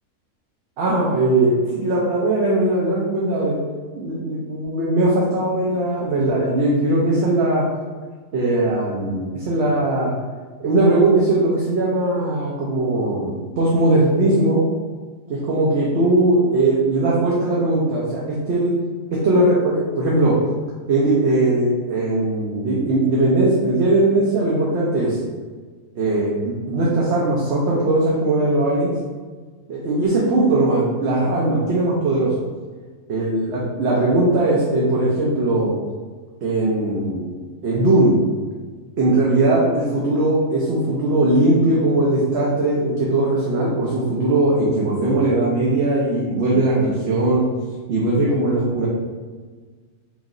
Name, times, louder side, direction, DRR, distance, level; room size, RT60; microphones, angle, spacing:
voice 1, 0.8-3.6 3.9-7.7 8.3-10.1 10.6-14.6 15.3-18.8 19.2-20.4 20.9-25.2 26.0-28.9 29.7-32.3 33.1-35.7 36.4-37.3 37.6-38.2 39.0-47.5 47.9-48.9, right 2 dB, 60° right, -5 dB, 0.8 m, -19 dB
3.0 x 2.7 x 3.7 m, 1.5 s
omnidirectional pair, 1.5 m